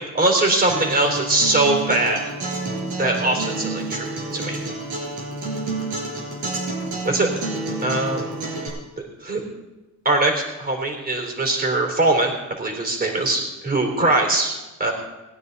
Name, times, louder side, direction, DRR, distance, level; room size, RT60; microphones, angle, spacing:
voice 1, 0.0-2.2 3.0-4.6 7.0-7.3 7.8-8.3 9.2-9.4 10.1-12.3 12.6-14.5 14.8-14.9, right 2 dB, 30° right, 2 dB, 3.9 m, -21 dB
Acoustic guitar, 0.7-8.7, right 2 dB, 80° right, 5.1 m, -29 dB
20.5 x 10.0 x 4.1 m, 1.1 s
cardioid pair, 90°, 30 cm